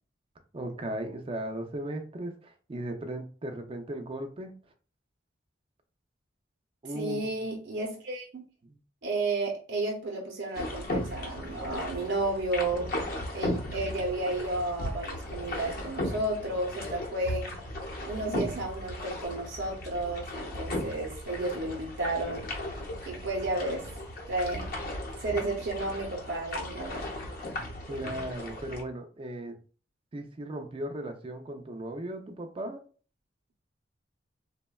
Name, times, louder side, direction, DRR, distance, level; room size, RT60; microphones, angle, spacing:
voice 1, 0.5-4.6 6.8-7.4 8.6-8.8 27.9-29.6 30.1-32.8, right 1 dB, 30° right, 0.4 m, -37 dB
voice 2, 6.9-8.4 9.0-12.9 13.3-17.5 18.0-22.4 23.1-23.9 24.3-24.7 25.2-27.1, right 2 dB, 85° right, 0.6 m, -32 dB
sound 1, 10.5-28.8, left 1 dB, 55° left, 0.7 m, -36 dB
3.4 x 2.1 x 2.2 m
head